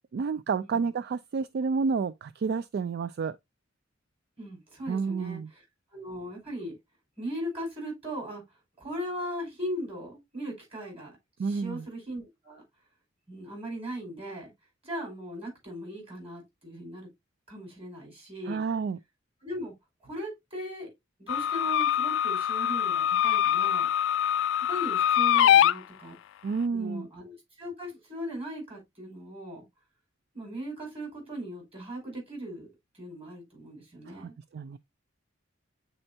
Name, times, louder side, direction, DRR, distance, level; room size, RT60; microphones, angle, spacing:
voice 1, 0.1-3.4 4.9-5.5 11.4-11.8 18.5-19.0 26.4-27.1 34.1-34.8, right 5 dB, 55° right, 0.3 m, -30 dB
voice 2, 4.4-5.6 5.9-6.8 7.2-8.4 8.8-11.1 11.4-12.6 13.3-14.5 14.8-17.1 17.5-18.6 19.4-19.7 20.0-20.9 21.2-24.3 24.7-26.1 26.7-29.6 30.3-34.3, equal, 30° right, 4.9 m, -38 dB
sound 1, 21.3-25.7, left 10 dB, 65° left, 0.3 m, -24 dB
8.7 x 4.4 x 2.7 m
head